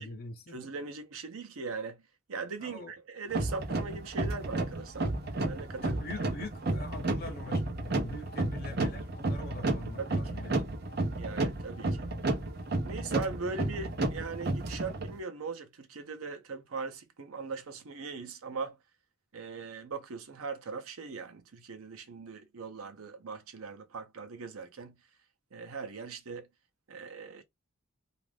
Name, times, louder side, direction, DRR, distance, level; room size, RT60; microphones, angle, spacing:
voice 1, 0.0-0.6 2.6-2.9 5.8-10.6, left 2 dB, 45° left, 0.7 m, -43 dB
voice 2, 0.5-2.0 2.3-5.1 5.4-6.0 10.0-10.5 11.2-12.1 12.8-18.8 19.3-25.0 25.5-26.5 26.9-27.4, right 4 dB, 80° right, 0.7 m, -40 dB
sound 1, 3.3-15.1, right 2 dB, 45° right, 0.6 m, -32 dB
2.5 x 2.5 x 3.3 m
head